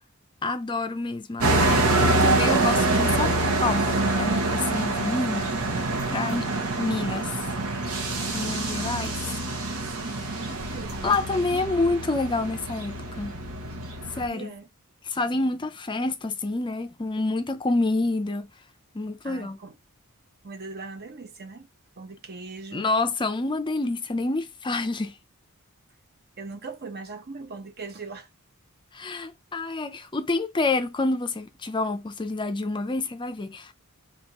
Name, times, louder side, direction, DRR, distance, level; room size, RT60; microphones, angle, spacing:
voice 1, 0.4-5.5 6.1-6.5 6.8-7.3 8.3-9.2 11.0-13.4 14.2-14.5 15.0-18.5 18.9-19.6 22.7-25.2 28.9-33.7, left 3 dB, 20° left, 0.5 m, -28 dB
sound 1, 1.4-14.3, right 2 dB, 90° right, 1.3 m, -25 dB
voice 2, 10.0-11.6 14.3-14.7 19.2-19.7 20.4-21.7 22.0-22.8 26.4-28.3, right 3 dB, 45° right, 0.9 m, -40 dB
4.5 x 3.5 x 2.9 m
head